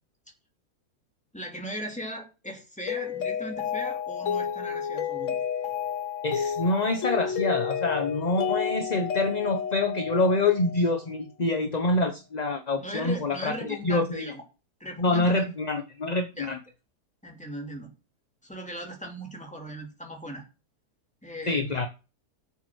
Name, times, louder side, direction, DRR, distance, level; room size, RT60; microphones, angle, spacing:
voice 1, 1.3-5.4 12.8-14.4 14.8-15.4 16.3-16.5 17.2-17.9 18.4-20.4 21.2-21.7, equal, 5° left, 1 dB, 2.7 m, -38 dB
Mallet percussion, 2.9-11.0, left 7 dB, 60° left, 1.2 m, -31 dB
voice 2, 6.2-14.3 15.0-16.6 21.5-21.9, left 2 dB, 30° left, 7 dB, 1.0 m, -26 dB
11.0 x 7.2 x 6.3 m, 0.31 s
omnidirectional pair, 1.7 m